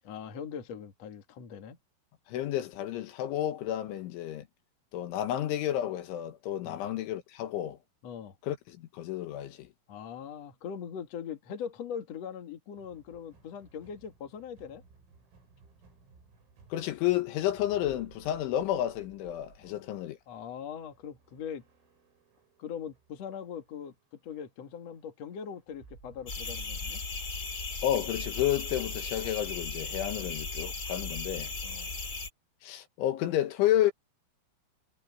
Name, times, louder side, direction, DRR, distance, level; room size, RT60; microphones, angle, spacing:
voice 1, 0.0-1.8 6.6-6.9 8.0-8.4 9.9-14.8 19.6-19.9 20.3-21.6 22.6-23.9 24.2-27.0 30.2-30.3 31.6-31.9, left 7 dB, 55° left, 1.9 m, -41 dB
voice 2, 2.3-4.5 4.9-7.8 8.4-9.7 16.7-20.2 27.8-31.5 32.6-33.9, left 12 dB, 75° left, 3.6 m, -31 dB
sound 1, 12.8-29.1, right 4 dB, 80° right, 10.5 m, -59 dB
sound 2, 26.3-32.3, left 4 dB, 35° left, 1.5 m, -36 dB
omnidirectional pair, 6.0 m